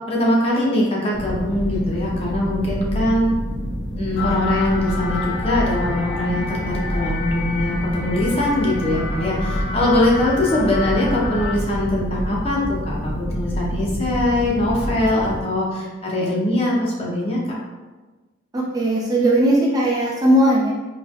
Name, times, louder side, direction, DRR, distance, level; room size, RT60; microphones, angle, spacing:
voice 1, 0.1-3.3 3.9-17.4, left 1 dB, 30° left, -3 dB, 0.7 m, -22 dB
sound 1, 1.1-15.4, equal, 60° left, 1.4 m, -28 dB
sound 2, 4.2-11.5, left 4 dB, 90° left, 0.5 m, -31 dB
voice 2, 18.5-20.7, right 1 dB, 20° right, -4 dB, 0.3 m, -18 dB
4.1 x 3.0 x 2.3 m, 1.2 s
head